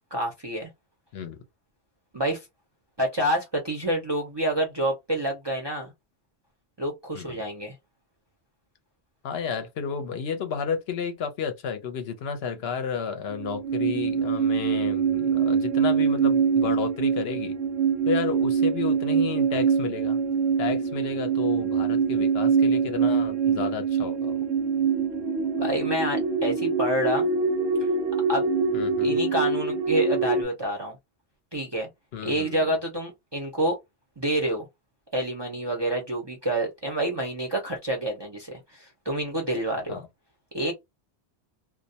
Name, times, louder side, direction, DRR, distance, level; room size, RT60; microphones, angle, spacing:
voice 1, 0.1-0.7 2.1-2.5 3.0-5.9 6.8-7.8 25.6-27.3 28.3-28.5 29.0-31.0 31.5-31.9 32.2-33.8 34.2-34.7 35.1-40.0 40.5-40.7, right 1 dB, 30° right, 0.5 m, -28 dB
voice 2, 9.2-17.6 18.1-20.2 20.6-24.5 28.7-29.2 32.1-32.5 39.9-40.1, left 6 dB, 70° left, 0.8 m, -32 dB
sound 1, 13.3-30.4, right 5 dB, 65° right, 0.8 m, -24 dB
2.2 x 2.1 x 2.7 m
omnidirectional pair, 1.2 m